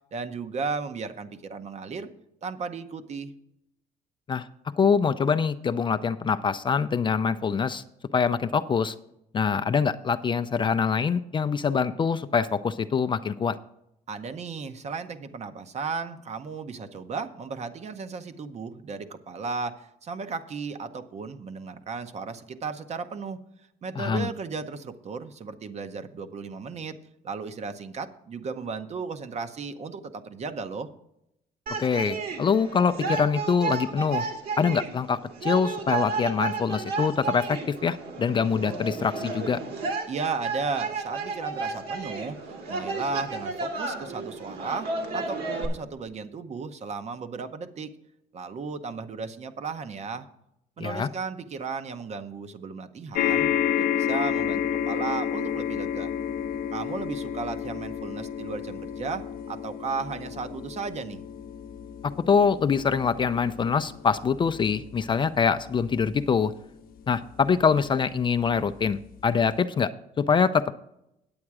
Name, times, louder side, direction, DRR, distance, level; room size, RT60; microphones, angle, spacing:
voice 1, 0.1-2.1 2.4-3.3 14.1-23.4 23.8-27.0 27.2-30.9 40.1-47.9 48.3-50.3 50.8-56.1 56.7-61.2, right 4 dB, 40° right, 10 dB, 0.8 m, -35 dB
voice 2, 4.8-7.8 8.1-8.9 9.3-13.6 24.0-24.3 31.8-34.2 34.6-39.6 50.8-51.1 62.3-66.5 67.1-70.8, left 6 dB, 30° left, 11 dB, 0.4 m, -24 dB
sound 1, 31.7-45.7, right 4 dB, 65° right, 2.3 m, -32 dB
sound 2, 53.1-67.7 68.5-68.6 68.8-68.9, left 9 dB, 60° left, 0.7 m, -31 dB
8.8 x 8.5 x 4.7 m, 0.82 s
cardioid pair, 110°, 17 cm